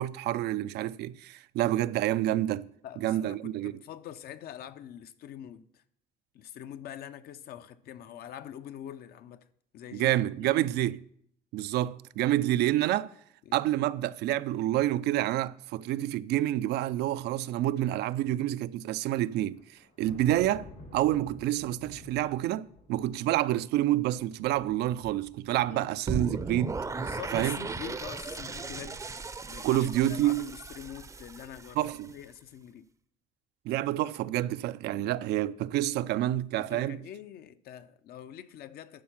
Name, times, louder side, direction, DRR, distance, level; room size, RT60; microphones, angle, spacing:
voice 1, 0.0-2.7 3.0-3.7 9.9-11.0 11.5-13.1 13.5-20.7 20.9-26.8 27.3-27.6 29.6-30.5 31.8-32.1 33.7-37.0, right 14 dB, 75° right, 0.4 m, -28 dB
voice 2, 2.8-5.8 6.3-9.5 9.7-10.6 13.5-13.6 25.7-26.0 27.0-29.0 29.5-32.9 34.9-35.1 36.6-39.0, left 10 dB, 65° left, 0.6 m, -44 dB
Thunder, 19.4-28.8, left 2 dB, 85° left, 3.1 m, -51 dB
sound 1, 26.1-32.1, right 4 dB, 20° right, 0.5 m, -37 dB
11.5 x 4.7 x 5.9 m
cardioid pair, 110°, 17 cm